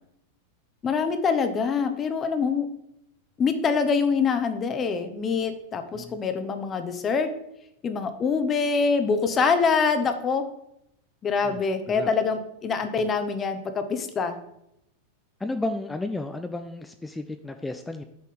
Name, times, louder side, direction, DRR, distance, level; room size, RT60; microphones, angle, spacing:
voice 1, 0.8-2.7 3.4-7.3 7.8-10.4 11.2-14.4, left 5 dB, 25° left, 7 dB, 1.0 m, -25 dB
voice 2, 15.4-18.0, left 2 dB, 10° left, 7 dB, 0.5 m, -33 dB
7.2 x 4.2 x 6.5 m, 0.79 s
figure-of-eight pair, 90°, 0 cm